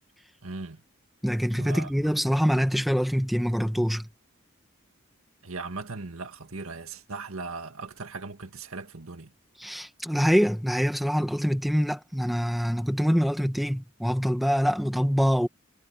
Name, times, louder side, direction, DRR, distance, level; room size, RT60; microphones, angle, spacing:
voice 1, 0.4-0.8 1.5-2.1 5.4-9.3, right 3 dB, 75° right, 2.0 m, -38 dB
voice 2, 1.2-4.1 9.6-15.5, equal, ahead, 1.7 m, -25 dB
head